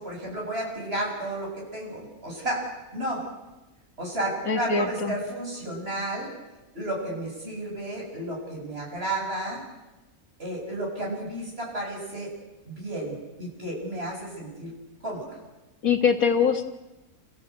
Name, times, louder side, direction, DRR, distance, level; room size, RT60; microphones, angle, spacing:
voice 1, 0.0-2.7 2.9-3.2 4.0-6.3 6.7-9.6 10.4-12.3 12.7-14.7 15.0-15.4, right 1 dB, 40° right, -2 dB, 8.0 m, -32 dB
voice 2, 4.4-5.1 15.8-16.6, left 6 dB, 70° left, 5 dB, 2.1 m, -23 dB
30.0 x 15.0 x 8.2 m, 1.1 s
omnidirectional pair, 1.6 m